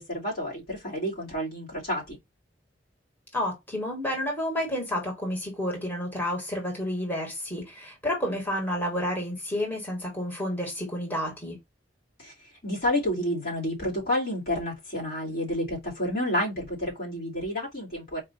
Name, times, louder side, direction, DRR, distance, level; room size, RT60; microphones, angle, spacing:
voice 1, 0.0-2.2 12.2-18.2, left 1 dB, 60° left, 2.8 m, -30 dB
voice 2, 3.3-11.5, left 1 dB, 10° left, 1.7 m, -30 dB
4.6 x 2.8 x 4.0 m
head